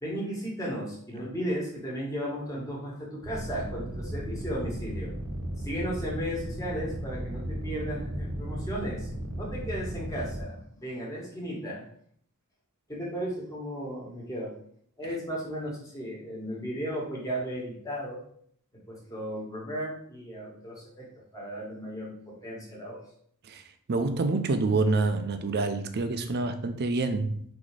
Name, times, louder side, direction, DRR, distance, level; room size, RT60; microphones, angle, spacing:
voice 1, 0.0-5.1 5.6-9.1 9.4-11.8 12.9-14.5 15.0-18.2 18.7-21.1 21.3-23.0, equal, 15° left, 1.4 m, -35 dB
sound 1, 3.2-10.4, right 1 dB, 75° right, 0.9 m, -35 dB
voice 2, 23.9-27.4, right 3 dB, 50° right, 0.4 m, -27 dB
4.0 x 2.8 x 4.7 m
head